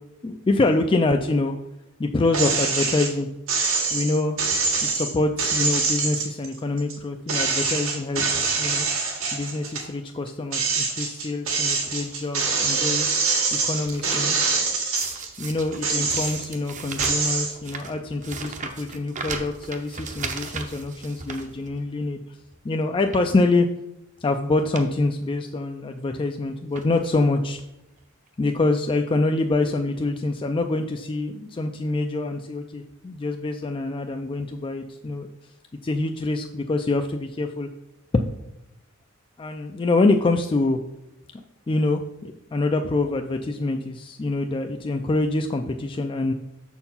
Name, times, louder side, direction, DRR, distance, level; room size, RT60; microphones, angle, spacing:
voice 1, 0.2-1.6 2.0-3.3 3.9-4.4 4.8-8.9 9.3-13.1 13.5-14.4 15.4-22.2 22.6-23.7 24.2-27.6 28.4-35.3 35.8-37.7 38.1-38.2 39.4-40.8 41.3-41.4 41.7-46.3, left 2 dB, 25° left, 5 dB, 0.4 m, -25 dB
sound 1, 2.3-3.1 3.5-6.9 7.3-9.9 10.3-15.3 15.7-16.6 17.0-17.5, right 4 dB, 75° right, 1.9 m, -24 dB
sound 2, 12.0-12.4 13.0-14.6 15.0-22.1 22.4-22.6 23.0-23.4 24.2-24.3 24.6-24.9 25.2-25.3 26.2-26.4 26.7-27.2 28.0-28.1 28.3-28.4, right 4 dB, 40° right, 0.7 m, -37 dB
6.7 x 4.5 x 5.5 m, 0.88 s
head